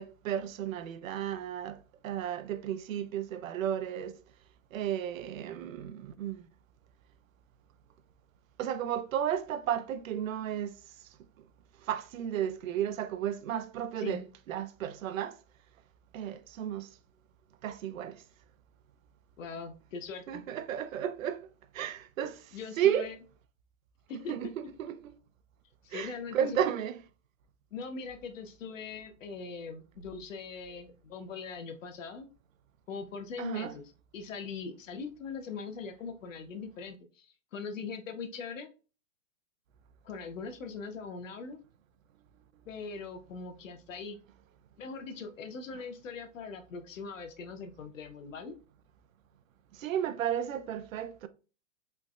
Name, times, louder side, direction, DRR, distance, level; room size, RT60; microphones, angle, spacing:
voice 1, 0.0-4.2 4.7-6.5 8.6-10.8 11.8-14.2 14.5-15.4 16.1-16.9 17.6-18.2 20.3-21.5 21.7-23.1 24.3-25.1 25.9-27.0 33.4-33.7 49.7-51.3, right 10 dB, 80° right, 0.5 m, -33 dB
voice 2, 14.0-14.3 19.4-20.4 22.5-23.1 24.1-24.3 25.8-26.6 27.7-32.3 32.9-38.7 40.0-41.6 42.6-44.2 44.8-48.6, left 5 dB, 70° left, 0.8 m, -41 dB
3.3 x 3.0 x 2.4 m
hypercardioid pair, 175°, 39 cm